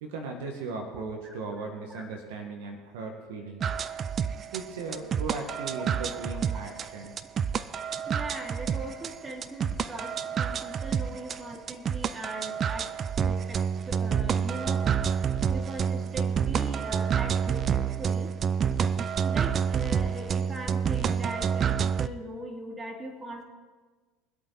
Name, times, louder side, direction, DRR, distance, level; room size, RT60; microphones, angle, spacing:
voice 1, 0.0-3.7 4.5-7.2, right 4 dB, 70° right, 2 dB, 1.8 m, -37 dB
sound 1, 3.6-22.1, right 7 dB, 40° right, 0.5 m, -28 dB
voice 2, 8.1-12.9 13.2-13.6 13.9-14.9 15.5-18.3 19.0-23.4, right 1 dB, 20° right, 1 dB, 2.9 m, -40 dB
22.5 x 8.4 x 4.3 m, 1.4 s
hypercardioid pair, 75°, 0 cm